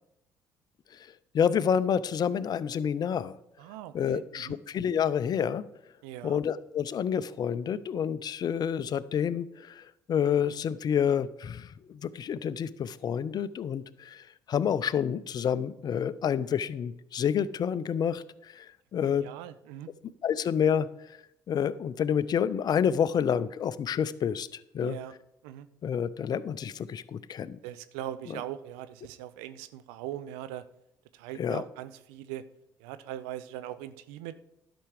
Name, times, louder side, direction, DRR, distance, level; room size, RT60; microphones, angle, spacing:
voice 1, 1.3-3.3 3.9-5.6 6.2-19.3 20.2-20.9 21.5-25.0 25.8-27.6 28.3-28.4 31.4-31.6, left 8 dB, 45° left, 17 dB, 0.5 m, -29 dB
voice 2, 3.6-4.6 6.0-6.4 19.0-19.9 24.8-25.1 25.4-25.7 27.6-30.7 31.1-32.4 32.8-34.4, right 12 dB, 75° right, 13 dB, 0.5 m, -40 dB
11.5 x 6.0 x 4.9 m, 0.83 s
hypercardioid pair, 55°, 10 cm